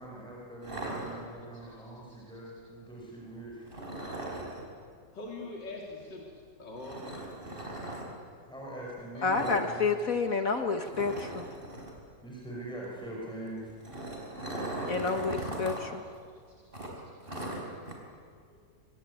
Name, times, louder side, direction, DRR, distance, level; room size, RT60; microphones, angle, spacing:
voice 1, 0.0-3.8 8.4-10.0 12.2-13.7, right 1 dB, ahead, -3 dB, 5.5 m, -42 dB
sound 1, 0.6-1.7 3.7-4.6 6.8-8.0 9.3-9.7 9.9-10.1 10.4-10.5 10.9-12.0 13.6-15.8 16.1-16.2 16.7-17.9, right 1 dB, 25° right, 5.0 m, -38 dB
voice 2, 5.1-6.3 6.6-7.2 9.1-9.6 18.5-18.6, left 2 dB, 65° left, -2 dB, 3.7 m, -43 dB
voice 3, 9.2-11.5 14.9-16.0, left 4 dB, 50° left, 6 dB, 1.6 m, -29 dB
24.5 x 24.0 x 9.7 m, 2.1 s
omnidirectional pair, 2.0 m